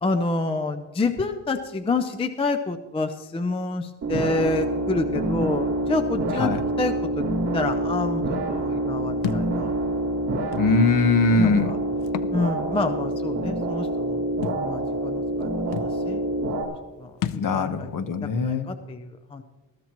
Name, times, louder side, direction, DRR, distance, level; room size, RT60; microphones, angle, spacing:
voice 1, 0.0-6.5 6.8-7.2 7.5-8.2 8.5-9.7 11.4-11.8 12.3-14.2 14.6-16.2 16.6-17.9 18.4-19.4, left 3 dB, 15° left, 8 dB, 0.4 m, -28 dB
sound 1, 4.0-16.6, right 1 dB, 35° right, 3.0 m, -27 dB
Thump thud, 9.2-9.5 10.5-10.7 12.0-12.4 12.8-12.9 14.4-14.6 15.4-15.5 15.7-16.0 17.2-17.5, left 9 dB, 80° left, 0.8 m, -30 dB
voice 2, 10.6-11.7 17.3-18.7, left 4 dB, 45° left, 9 dB, 1.1 m, -21 dB
21.0 x 14.0 x 3.0 m, 1.2 s
cardioid pair, 165°, 44 cm